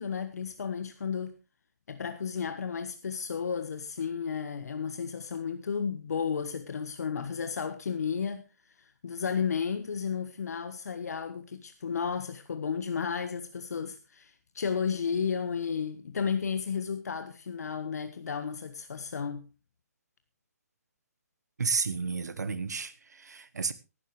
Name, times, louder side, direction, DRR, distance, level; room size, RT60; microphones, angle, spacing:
voice 1, 0.0-1.4 1.9-8.4 8.8-19.4, left 6 dB, 75° left, 1.3 m, -33 dB
voice 2, 21.6-23.7, right 5 dB, 90° right, 1.3 m, -32 dB
16.5 x 12.0 x 3.2 m
hypercardioid pair, 160°, 9 cm